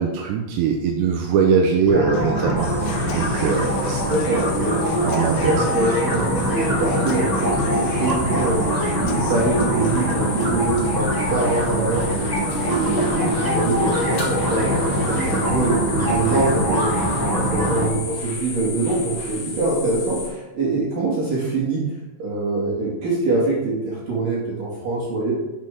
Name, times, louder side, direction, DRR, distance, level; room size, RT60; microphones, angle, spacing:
voice 1, 0.0-4.0 5.0-5.6, right 6 dB, 90° right, 0 dB, 3.1 m, -21 dB
sound 1, 1.9-17.9, equal, 30° right, 0.4 m, -23 dB
Human voice / Acoustic guitar, 2.1-10.1, left 4 dB, 75° left, 2.0 m, -36 dB
sound 2, 2.6-20.3, left 4 dB, 55° left, 3.7 m, -33 dB
voice 2, 4.1-5.0 5.3-21.8 22.2-25.3, right 3 dB, 55° right, -6 dB, 3.6 m, -24 dB
12.0 x 7.5 x 3.7 m, 1.0 s
omnidirectional pair, 5.2 m